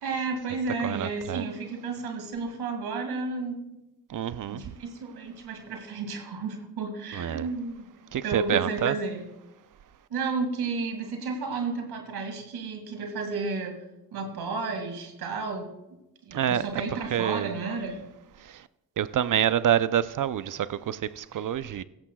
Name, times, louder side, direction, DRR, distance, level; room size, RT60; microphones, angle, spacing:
voice 1, 0.0-3.8 4.5-7.9 8.2-9.3 10.1-13.8 14.1-15.7 16.2-18.0, right 4 dB, 85° right, 2.3 m, -32 dB
voice 2, 0.8-1.4 4.1-4.6 7.1-7.5 8.1-9.0 16.3-16.7 17.1-17.5 18.5-18.6 19.0-21.8, right 10 dB, 55° right, 0.6 m, -27 dB
16.5 x 13.5 x 2.3 m
cardioid pair, 55°, 38 cm